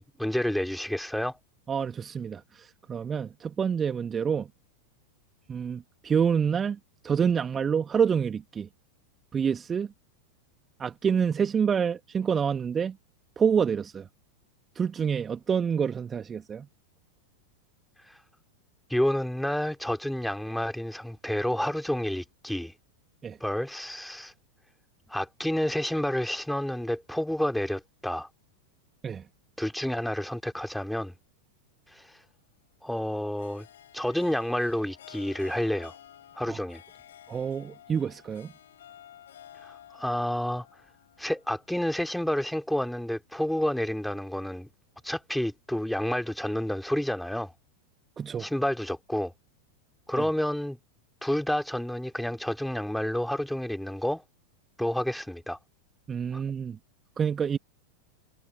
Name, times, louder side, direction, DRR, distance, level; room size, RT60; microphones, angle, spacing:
voice 1, 0.0-1.4 18.1-18.2 18.9-22.7 23.4-24.3 25.1-28.3 29.6-31.1 31.9-32.2 32.8-33.7 33.9-36.0 36.4-36.8 39.6-40.7 41.2-44.7 45.0-47.5 48.4-49.3 50.1-50.8 51.2-54.2 54.8-55.6 56.3-56.4, left 1 dB, ahead, 3.6 m, -29 dB
voice 2, 1.7-4.5 5.5-6.8 7.0-8.7 9.3-9.9 10.8-13.0 13.4-14.1 14.8-16.7 23.2-23.4 29.0-29.2 36.5-36.6 37.3-38.5 48.2-48.5 50.2-50.3 56.1-56.8 57.2-57.6, right 7 dB, 20° right, 2.1 m, -27 dB
Harp, 32.0-42.4, left 11 dB, 60° left, 7.7 m, -52 dB
figure-of-eight pair, 90°, 0 cm